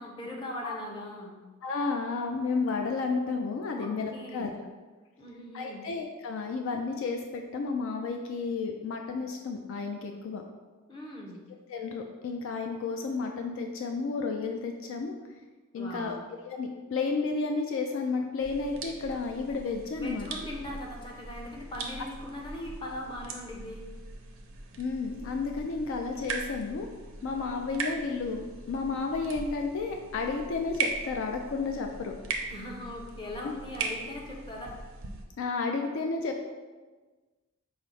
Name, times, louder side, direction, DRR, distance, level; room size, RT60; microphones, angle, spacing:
voice 1, 0.0-1.3 3.7-4.6 5.2-5.9 10.9-11.4 15.7-16.2 19.9-23.8 32.5-34.8, left 1 dB, 20° left, -1 dB, 0.7 m, -40 dB
voice 2, 1.6-4.5 5.5-10.4 11.7-15.1 15.7-16.1 16.5-20.3 24.8-26.9 27.2-32.2 33.4-33.5 35.4-36.5, left 4 dB, 60° left, 3 dB, 0.3 m, -32 dB
sound 1, 18.4-35.2, right 4 dB, 65° right, 0.5 m, -40 dB
5.5 x 2.0 x 4.7 m, 1.3 s
head